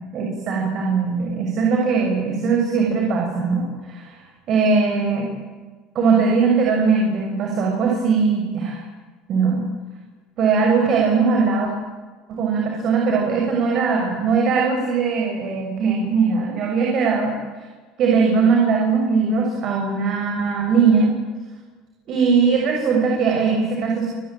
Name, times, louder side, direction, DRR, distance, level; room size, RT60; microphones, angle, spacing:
voice 1, 0.1-4.2 4.5-5.3 5.9-8.8 9.3-9.6 10.4-11.7 12.3-17.3 18.0-21.1 22.1-24.1, right 5 dB, 45° right, 0 dB, 6.8 m, -20 dB
29.5 x 20.5 x 9.1 m, 1.4 s
cardioid pair, 145°, 0 cm